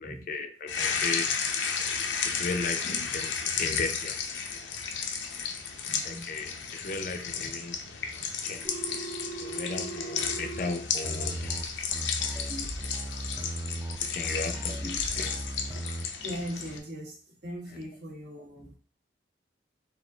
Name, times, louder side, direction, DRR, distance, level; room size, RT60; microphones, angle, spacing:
voice 1, 0.0-1.3 2.2-4.2 6.0-7.8 8.4-8.8 9.4-11.6 14.0-15.4, left 3 dB, 50° left, 0.5 m, -35 dB
sound 1, 0.7-16.8, left 6 dB, 90° left, 0.6 m, -33 dB
voice 2, 5.9-6.6 12.2-12.3 13.3-13.4 16.2-18.8, equal, 70° right, 1.6 m, -40 dB
Telephone, 8.6-10.6, right 3 dB, 35° right, 1.0 m, -39 dB
sound 2, 11.0-16.1, right 1 dB, 20° right, 0.3 m, -36 dB
4.1 x 2.5 x 3.8 m
head